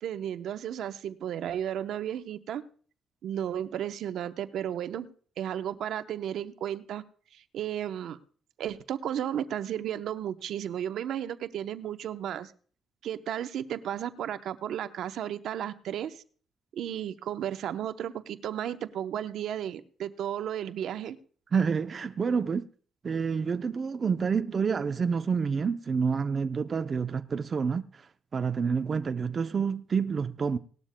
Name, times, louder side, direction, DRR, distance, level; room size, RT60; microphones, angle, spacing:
voice 1, 0.0-2.6 3.2-5.1 5.4-7.0 7.3-8.2 8.6-12.5 13.0-16.2 16.7-21.2, right 10 dB, 75° right, 0.8 m, -34 dB
voice 2, 21.5-22.6 23.0-27.8 28.3-30.6, right 6 dB, 40° right, 0.5 m, -28 dB
19.0 x 12.5 x 2.2 m
cardioid pair, 90°, 0 cm